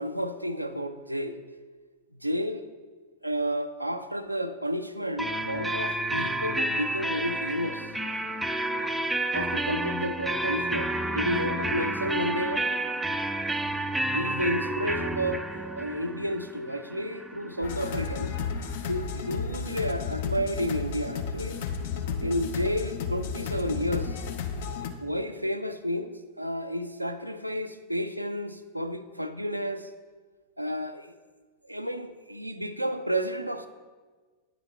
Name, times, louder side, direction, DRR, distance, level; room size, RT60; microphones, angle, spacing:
voice 1, 0.0-1.5 2.2-2.7 3.2-7.9 9.3-12.7 14.1-18.4 18.9-21.6 22.2-24.2 25.0-29.9 30.6-31.1 31.6-33.7, equal, 85° right, 9 dB, 0.3 m, -31 dB
sound 1, 5.2-18.8, right 1 dB, 5° right, 0.3 m, -30 dB
sound 2, 17.6-24.9, left 6 dB, 55° left, 0.6 m, -33 dB
9.4 x 3.9 x 4.3 m, 1.4 s
figure-of-eight pair, 90°, 0 cm